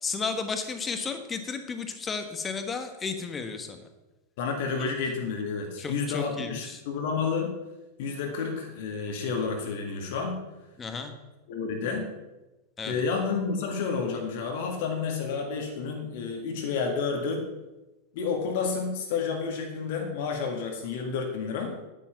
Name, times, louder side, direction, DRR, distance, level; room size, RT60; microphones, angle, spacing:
voice 1, 0.0-3.8 4.8-4.9 5.8-6.8 10.8-11.1 12.8-13.0, left 5 dB, 20° left, 7 dB, 1.4 m, -33 dB
voice 2, 4.4-7.5 8.0-10.4 11.5-12.1 12.8-17.5 18.1-21.8, left 5 dB, 50° left, 2 dB, 1.8 m, -30 dB
9.8 x 9.0 x 5.9 m, 1.1 s
figure-of-eight pair, 90°, 0 cm